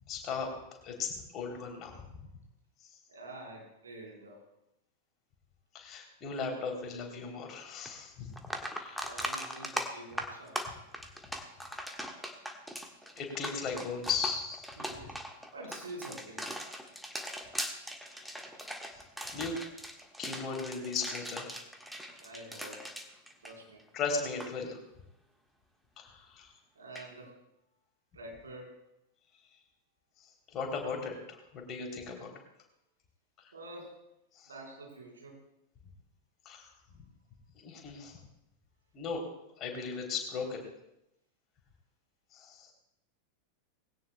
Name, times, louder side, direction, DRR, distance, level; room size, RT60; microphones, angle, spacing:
voice 1, 0.1-0.5 0.8-2.0 5.7-8.3 8.7-9.1 13.2-14.7 18.0-18.4 18.9-19.0 19.3-19.5 20.2-21.6 23.9-24.8 26.0-26.5 30.5-32.3 34.3-34.5 36.4-36.7 37.5-38.2 38.9-39.2 39.6-40.7 42.3-42.7, left 5 dB, 30° left, 2 dB, 3.2 m, -37 dB
voice 2, 3.1-4.4 8.9-10.6 14.8-15.2 15.5-16.5 22.2-22.8 23.4-23.8 26.7-27.4 28.1-28.8 33.5-33.9 34.5-35.4, right 2 dB, 70° right, -1 dB, 4.2 m, -47 dB
sound 1, 7.9-8.0 8.3-24.0 24.2-24.5 26.9-27.1, equal, ahead, 1.4 m, -40 dB
20.0 x 16.5 x 2.2 m, 0.84 s
figure-of-eight pair, 90°, 0 cm